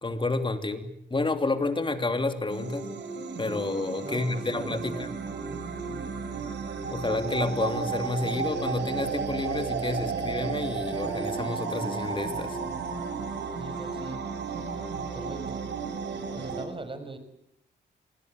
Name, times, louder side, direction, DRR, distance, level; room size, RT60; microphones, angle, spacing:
voice 1, 0.0-2.9 3.4-5.1 6.9-12.6, left 3 dB, 25° left, 8 dB, 3.1 m, -30 dB
sound 1, 2.5-16.7, right 5 dB, 75° right, 4.0 m, -33 dB
voice 2, 4.0-5.1 13.6-14.2 15.1-15.6 16.3-17.2, right 2 dB, 30° right, 9 dB, 5.9 m, -40 dB
27.5 x 20.0 x 8.2 m, 0.74 s
cardioid pair, 80°, 18 cm